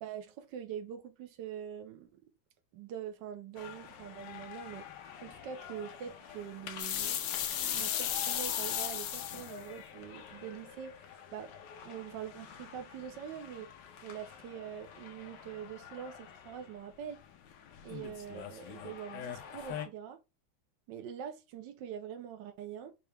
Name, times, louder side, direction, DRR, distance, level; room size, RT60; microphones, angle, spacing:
voice 1, 0.0-2.3 2.7-4.9 5.2-11.0 11.3-11.5 11.8-13.7 14.0-17.2 17.8-20.2 20.9-23.0, right 9 dB, 70° right, 1.2 m, -44 dB
sound 1, 3.5-19.9, left 8 dB, 70° left, 1.3 m, -47 dB
sound 2, 6.8-9.5, left 10 dB, 85° left, 1.5 m, -34 dB
5.6 x 2.8 x 3.3 m
omnidirectional pair, 2.2 m